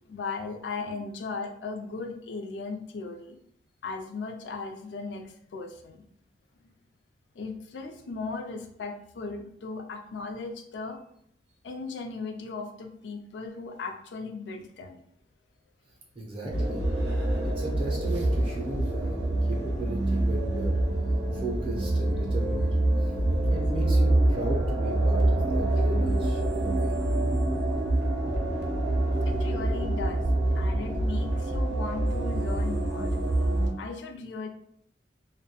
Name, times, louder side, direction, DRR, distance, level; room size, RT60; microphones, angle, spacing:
voice 1, 0.1-3.4 3.8-6.0 6.6-6.7 7.4-11.0 11.6-15.0 29.3-30.2 30.5-33.2 33.8-34.5, left 4 dB, 80° left, 5 dB, 0.4 m, -37 dB
voice 2, 16.2-16.8 17.4-20.8 21.3-22.7 23.0-23.1 23.5-26.9, right 2 dB, 30° right, -2 dB, 0.4 m, -36 dB
sound 1, 16.5-33.7, right 1 dB, 85° right, 0.5 m, -26 dB
2.2 x 2.1 x 2.7 m, 0.71 s
head